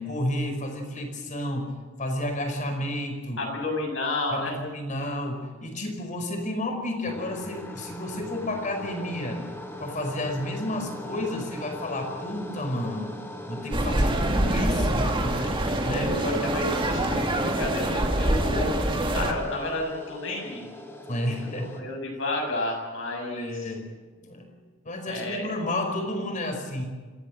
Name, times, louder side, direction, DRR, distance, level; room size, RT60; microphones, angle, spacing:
voice 1, 0.0-1.7 2.0-3.4 4.3-9.4 9.8-13.2 13.5-15.3 15.8-16.1 21.1-21.8 23.4-23.9 24.2-24.6 24.8-26.8, left 1 dB, 40° left, 5 dB, 5.0 m, -31 dB
voice 2, 3.4-4.6 15.4-20.7 21.6-23.7 25.1-25.5, left 2 dB, 70° left, 0 dB, 7.1 m, -31 dB
sound 1, 7.1-21.8, left 1 dB, 10° left, 2.9 m, -40 dB
sound 2, 13.7-19.3, right 1 dB, 25° right, 2.4 m, -25 dB
26.0 x 16.0 x 7.7 m, 1.4 s
head